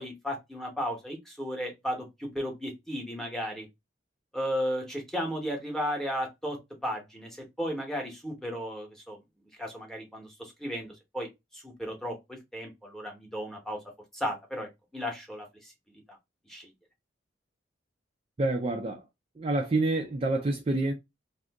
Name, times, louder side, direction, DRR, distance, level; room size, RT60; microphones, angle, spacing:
voice 1, 0.0-3.7 4.3-6.6 6.8-9.2 9.6-13.8 14.1-15.7 16.1-16.2 16.5-16.7, equal, ahead, 0.9 m, -35 dB
voice 2, 18.4-19.0 19.4-20.9, right 2 dB, 30° right, 0.4 m, -27 dB
2.7 x 2.5 x 3.4 m
head